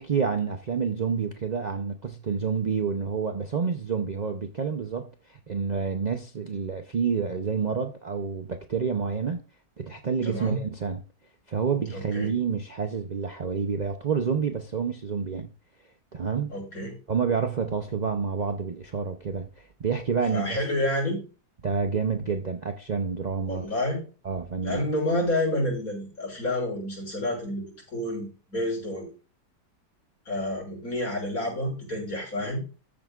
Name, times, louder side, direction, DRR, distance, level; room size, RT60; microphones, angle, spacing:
voice 1, 0.0-9.4 9.8-11.0 11.5-15.5 16.1-16.5 17.1-20.6 21.6-23.7 24.2-24.9, right 6 dB, 85° right, 0.3 m, -28 dB
voice 2, 10.2-10.6 11.9-12.3 16.5-17.0 20.3-21.2 23.5-24.0 24.6-27.6 27.9-29.1 30.3-32.6, left 1 dB, 55° left, 6.5 m, -29 dB
14.0 x 8.8 x 2.4 m
omnidirectional pair, 1.8 m